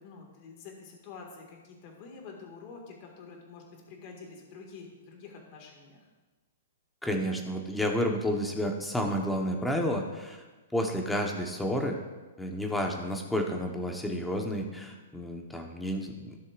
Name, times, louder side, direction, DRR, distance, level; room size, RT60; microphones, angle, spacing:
voice 1, 0.0-6.1, left 4 dB, 40° left, 1 dB, 2.0 m, -47 dB
voice 2, 7.0-10.4 10.7-12.0 12.4-16.4, equal, 5° left, 2 dB, 1.1 m, -30 dB
15.5 x 6.4 x 2.5 m, 1.2 s
hypercardioid pair, 145°, 0 cm